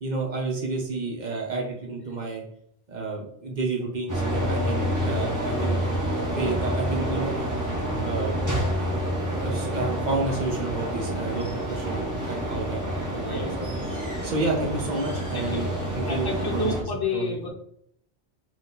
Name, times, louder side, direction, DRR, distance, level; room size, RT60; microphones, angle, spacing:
voice 1, 0.0-2.4 2.9-5.8 6.4-7.3 7.9-8.4 9.4-13.5 14.2-16.7 17.1-17.3, right 3 dB, 45° right, -1 dB, 1.0 m, -30 dB
sound 1, 4.1-16.8, equal, 20° right, 0.8 m, -28 dB
voice 2, 13.1-13.7 15.3-15.6 16.1-17.5, left 3 dB, 25° left, 1 dB, 0.6 m, -30 dB
4.0 x 2.4 x 4.0 m, 0.69 s
omnidirectional pair, 1.1 m